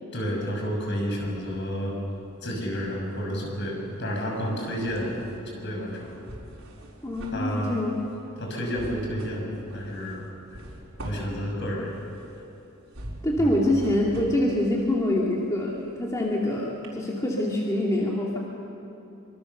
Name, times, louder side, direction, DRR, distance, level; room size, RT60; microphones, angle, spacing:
voice 1, 0.1-1.9 2.4-5.1 5.5-6.1 7.3-7.8 8.4-10.3 10.5-10.6 11.0-11.9 13.4-13.7, equal, 55° left, 0 dB, 6.4 m, -30 dB
sound 1, 1.4-2.4 2.7-16.4 16.8-16.9, right 1 dB, 75° right, 4.7 m, -44 dB
voice 2, 7.0-7.9 13.2-18.4, left 1 dB, 15° left, -3 dB, 2.3 m, -25 dB
25.0 x 24.5 x 6.8 m, 3.0 s
head